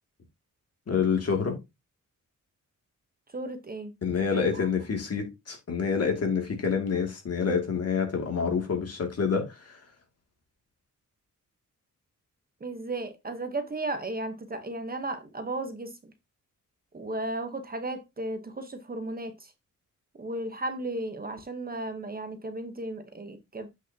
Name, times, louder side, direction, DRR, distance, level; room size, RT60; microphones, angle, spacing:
voice 1, 0.9-1.6 4.0-9.8, left 6 dB, 50° left, 2.4 m, -27 dB
voice 2, 3.3-3.9 4.3-4.4 12.6-15.9 16.9-19.3 20.2-23.7, right 2 dB, 30° right, 1.0 m, -34 dB
8.2 x 5.7 x 2.8 m
wide cardioid pair, 125°, 31 cm